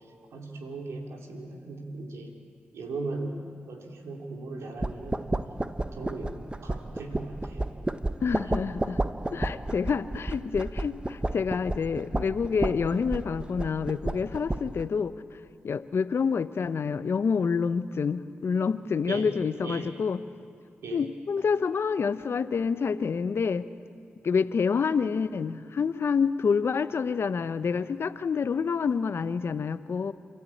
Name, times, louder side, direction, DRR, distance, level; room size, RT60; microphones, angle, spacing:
voice 1, 0.3-2.3 2.7-5.3 5.9-6.3 6.6-7.7 19.1-19.3 19.6-19.9 20.8-21.0, right 3 dB, 75° right, 1 dB, 3.3 m, -38 dB
sound 1, 4.8-14.9, right 2 dB, 20° right, 1.0 m, -32 dB
voice 2, 8.2-9.0 9.3-15.4 15.6-20.2 20.9-23.7 24.2-30.1, left 5 dB, 60° left, 13 dB, 0.9 m, -28 dB
27.5 x 13.0 x 8.7 m, 2.4 s
supercardioid pair, 40°, 5 cm